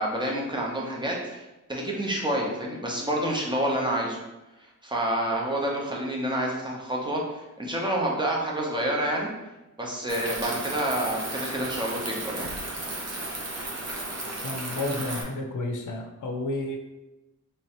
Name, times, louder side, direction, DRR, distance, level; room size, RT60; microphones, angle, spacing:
voice 1, 0.0-1.4 1.7-4.2 4.8-9.3 9.8-12.5, right 1 dB, 15° right, -2 dB, 0.7 m, -28 dB
sound 1, 10.1-15.2, right 2 dB, 55° right, 0.7 m, -34 dB
voice 2, 14.4-16.8, left 2 dB, 65° left, 3 dB, 0.5 m, -31 dB
3.3 x 3.0 x 2.9 m, 1.0 s
wide cardioid pair, 120°, 32 cm